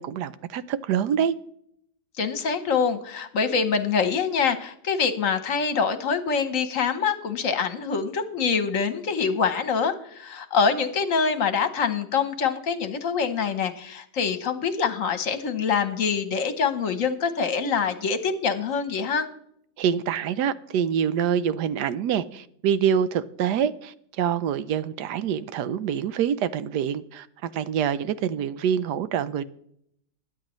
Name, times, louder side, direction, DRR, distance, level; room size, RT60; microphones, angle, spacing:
voice 1, 0.0-1.4 19.8-29.4, right 8 dB, 90° right, 1.2 m, -26 dB
voice 2, 2.2-19.3, left 6 dB, 55° left, 1.3 m, -25 dB
21.5 x 9.1 x 3.1 m
omnidirectional pair, 1.7 m